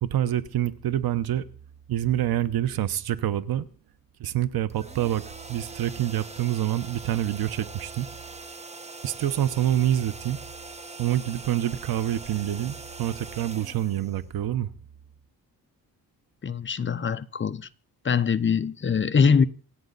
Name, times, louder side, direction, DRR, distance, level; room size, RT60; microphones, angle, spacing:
voice 1, 0.0-1.4 1.9-3.6 4.2-8.1 9.0-10.4 11.0-14.7, right 12 dB, 80° right, 1.0 m, -26 dB
sound 1, 4.7-14.7, right 3 dB, 20° right, 1.1 m, -42 dB
voice 2, 16.4-17.7 18.0-19.5, left 6 dB, 30° left, 0.7 m, -23 dB
27.5 x 9.3 x 4.0 m
wide cardioid pair, 140°, 36 cm